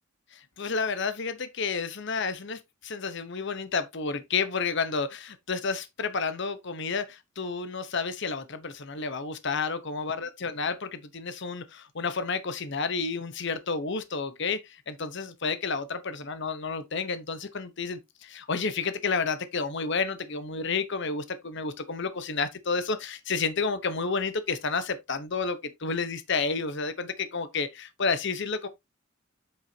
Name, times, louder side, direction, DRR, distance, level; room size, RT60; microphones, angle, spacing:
voice 1, 0.3-28.7, left 4 dB, 60° left, 0.9 m, -31 dB
8.1 x 6.3 x 2.7 m
head